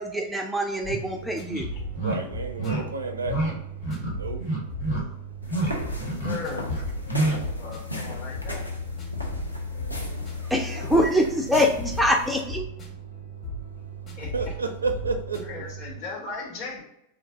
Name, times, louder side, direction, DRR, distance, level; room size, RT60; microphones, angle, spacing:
voice 1, 0.0-1.7 10.5-12.6, equal, 5° right, 2 dB, 0.3 m, -24 dB
sound 1, 0.8-16.0, equal, 30° left, 1.1 m, -36 dB
sound 2, 0.9-1.0 1.5-1.6 1.9-2.2 2.6-2.8 3.2-3.5 3.8-4.1 4.4-5.0 5.4-5.7 6.0-6.4 6.7-7.4, right 2 dB, 65° left, 1.5 m, -27 dB
voice 2, 2.0-3.3 4.2-4.4 14.3-15.6, right 3 dB, 75° right, 7 dB, 0.4 m, -30 dB
voice 3, 2.6-2.9 6.0-6.7 7.3-8.6 10.9-11.0 14.2-14.5 15.4-16.8, left 4 dB, 45° left, -2 dB, 1.2 m, -38 dB
sound 3, 5.4-12.4, equal, 85° left, 0.6 m, -36 dB
3.5 x 2.5 x 3.5 m, 0.81 s
figure-of-eight pair, 90°, 0 cm